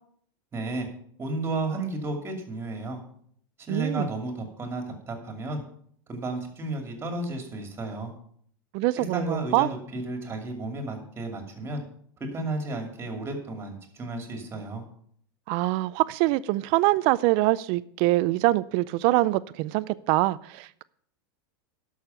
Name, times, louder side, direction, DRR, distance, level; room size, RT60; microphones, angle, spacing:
voice 1, 0.5-0.9 1.2-3.0 3.6-5.6 6.1-8.1 9.0-11.8 12.2-14.8, right 2 dB, 20° right, 4 dB, 2.6 m, -33 dB
voice 2, 3.7-4.1 8.7-9.7 15.5-20.8, right 18 dB, 50° right, 18 dB, 0.4 m, -24 dB
12.0 x 6.4 x 5.6 m, 0.63 s
supercardioid pair, 130°, 12 cm